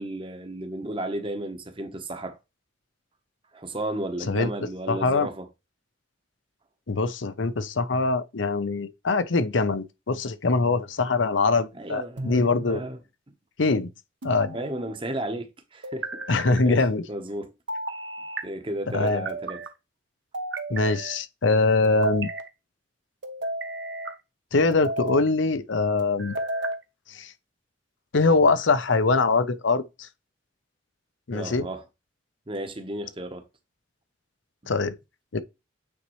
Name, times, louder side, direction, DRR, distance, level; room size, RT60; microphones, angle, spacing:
voice 1, 0.0-2.4 3.5-5.5 11.7-13.0 14.5-16.3 16.6-17.5 18.4-19.6 31.3-31.8 32.5-33.4, right 1 dB, 25° right, 1.0 m, -33 dB
voice 2, 4.9-5.3 6.9-12.8 13.6-13.9 14.2-14.6 16.3-17.0 18.9-19.3 20.7-22.3 24.5-26.4 27.1-27.3 28.1-30.1 31.3-31.7 34.7-34.9 35.3-35.4, left 3 dB, 80° left, 0.7 m, -23 dB
sound 1, 12.2-12.9 14.2-15.0 15.8-16.6 17.7-18.5 19.1-19.7 20.3-21.2 21.8-22.5 23.2-24.2 24.7-25.3 26.0-26.8, right 1 dB, 70° right, 1.0 m, -33 dB
8.7 x 4.0 x 3.1 m
head